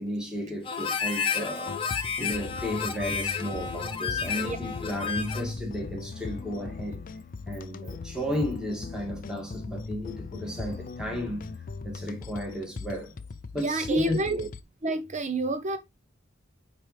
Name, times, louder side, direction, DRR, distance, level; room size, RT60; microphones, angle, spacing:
voice 1, 0.0-7.0 7.5-11.5 11.8-13.1 13.5-14.4, equal, 5° right, 1.9 m, -34 dB
Harmonica, 0.6-5.6, left 6 dB, 25° left, 1.0 m, -31 dB
sound 1, 1.7-14.6, left 3 dB, 45° left, 0.5 m, -39 dB
voice 2, 13.6-14.5 14.8-15.8, right 2 dB, 35° right, 1.0 m, -28 dB
9.4 x 3.9 x 3.3 m
head